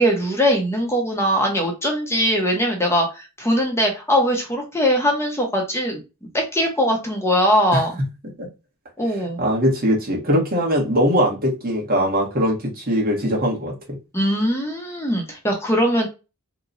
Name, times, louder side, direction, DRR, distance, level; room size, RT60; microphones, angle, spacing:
voice 1, 0.0-6.0 6.3-8.0 9.0-9.4 14.1-16.1, equal, 10° left, 2 dB, 0.8 m, -21 dB
voice 2, 9.2-14.0, equal, 40° right, -2 dB, 1.2 m, -21 dB
2.9 x 2.2 x 3.8 m, 0.28 s
head